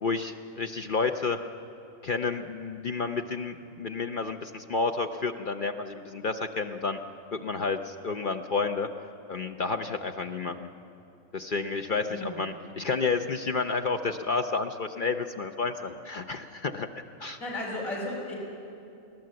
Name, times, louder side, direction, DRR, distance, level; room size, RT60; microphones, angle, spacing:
voice 1, 0.0-1.4 2.0-7.0 7.3-8.9 9.3-10.7 11.3-16.9 17.2-17.4, left 4 dB, 50° left, 6 dB, 0.6 m, -30 dB
voice 2, 17.4-18.4, left 1 dB, 70° left, -4 dB, 4.3 m, -34 dB
23.0 x 16.0 x 7.6 m, 2.7 s
omnidirectional pair, 1.5 m